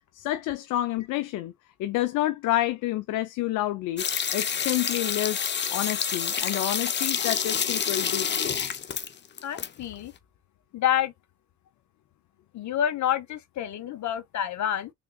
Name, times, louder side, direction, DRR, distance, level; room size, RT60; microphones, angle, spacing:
voice 1, 0.1-1.5 1.8-4.1 4.3-5.4 5.7-8.8, left 14 dB, 85° left, 0.5 m, -29 dB
sound 1, 4.0-9.7 9.9-10.0, left 7 dB, 35° left, 0.7 m, -28 dB
voice 2, 9.4-10.1 10.7-11.1 12.5-14.9, left 10 dB, 70° left, 1.0 m, -28 dB
3.7 x 3.6 x 2.3 m
cardioid pair, 90°, 30 cm